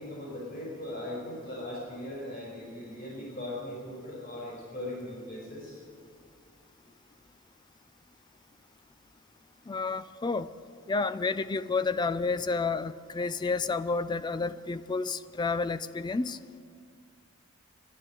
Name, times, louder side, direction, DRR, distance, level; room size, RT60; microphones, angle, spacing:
voice 1, 0.0-5.8, left 1 dB, 45° left, -4 dB, 5.1 m, -39 dB
voice 2, 9.7-10.5 10.9-16.4, left 4 dB, 20° left, 14 dB, 0.3 m, -30 dB
11.5 x 9.9 x 9.6 m, 2.1 s
head